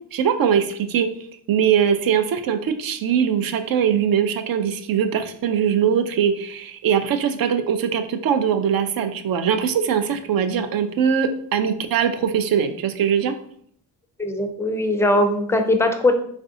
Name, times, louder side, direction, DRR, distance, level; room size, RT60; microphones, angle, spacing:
voice 1, 0.1-1.1 1.5-13.3, right 8 dB, 55° right, 8 dB, 0.5 m, -21 dB
voice 2, 14.2-16.1, left 1 dB, 5° left, 6 dB, 0.4 m, -20 dB
3.2 x 2.5 x 2.6 m, 0.64 s
supercardioid pair, 50°, 44 cm